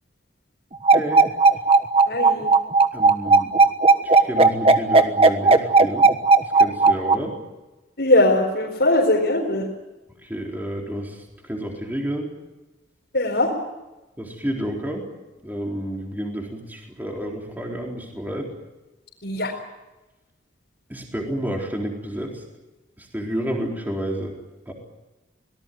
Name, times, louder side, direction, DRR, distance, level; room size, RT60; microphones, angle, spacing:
voice 1, 0.9-1.3 2.9-3.5 4.0-6.1 6.5-7.4 10.2-12.3 14.2-15.0 15.4-18.5 20.9-22.4 23.0-24.4 24.7-24.8, equal, 10° right, 0 dB, 4.1 m, -30 dB
sound 1, 0.9-7.2, right 3 dB, 30° right, 1.3 m, -14 dB
voice 2, 2.1-2.5 8.0-9.7 13.1-13.5 19.2-19.5, left 1 dB, 65° left, -2 dB, 4.4 m, -20 dB
25.0 x 19.0 x 9.3 m, 1.1 s
head